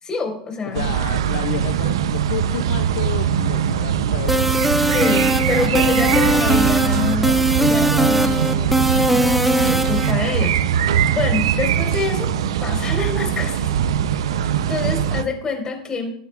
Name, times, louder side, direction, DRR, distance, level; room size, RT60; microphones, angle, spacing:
voice 1, 0.0-0.9 4.9-12.3 12.6-13.7 14.3-16.1, left 4 dB, 25° left, 3 dB, 4.5 m, -27 dB
voice 2, 0.7-4.4 5.5-5.9 6.3-6.7 7.0-7.8, left 12 dB, 70° left, 10 dB, 0.6 m, -31 dB
sound 1, 0.7-15.2, right 9 dB, 75° right, 0.6 m, -21 dB
sound 2, 4.3-10.1, right 1 dB, 5° right, 0.7 m, -19 dB
20.0 x 9.8 x 2.5 m, 0.71 s
hypercardioid pair, 85°, 3 cm